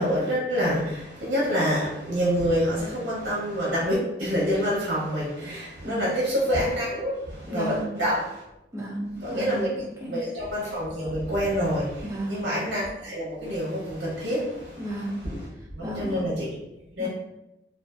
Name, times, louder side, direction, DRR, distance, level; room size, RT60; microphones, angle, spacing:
voice 1, 0.0-8.4 9.2-9.7 10.1-14.9 15.2-15.4 15.7-16.6 16.9-17.1, equal, 65° right, -6 dB, 0.7 m, -27 dB
voice 2, 7.5-8.0 8.7-10.2 12.0-12.4 14.8-15.2 15.8-16.2 17.0-17.1, right 1 dB, 15° right, -3 dB, 0.5 m, -33 dB
2.6 x 2.3 x 2.3 m, 0.90 s
head